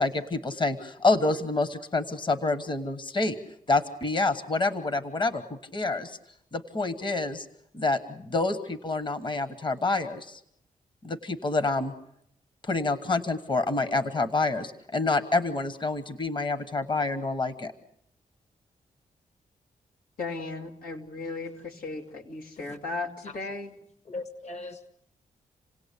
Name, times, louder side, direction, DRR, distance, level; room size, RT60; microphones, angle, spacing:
voice 1, 0.0-3.4 3.7-5.4 5.7-6.2 6.5-7.5 7.7-10.4 11.0-11.9 12.6-17.7, left 3 dB, 35° left, 11 dB, 1.3 m, -27 dB
voice 2, 20.2-23.7, left 3 dB, 90° left, 2 dB, 2.6 m, -36 dB
voice 3, 24.1-24.9, left 2 dB, 50° left, 10 dB, 1.5 m, -39 dB
28.0 x 18.0 x 8.4 m, 0.77 s
cardioid pair, 100°, 14 cm